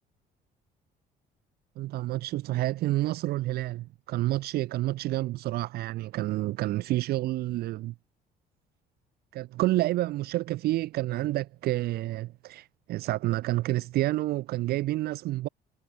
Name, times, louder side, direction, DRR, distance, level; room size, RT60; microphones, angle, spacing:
voice 1, 1.8-7.9 9.3-15.5, right 16 dB, 70° right, 0.5 m, -29 dB
cardioid pair, 110°, 17 cm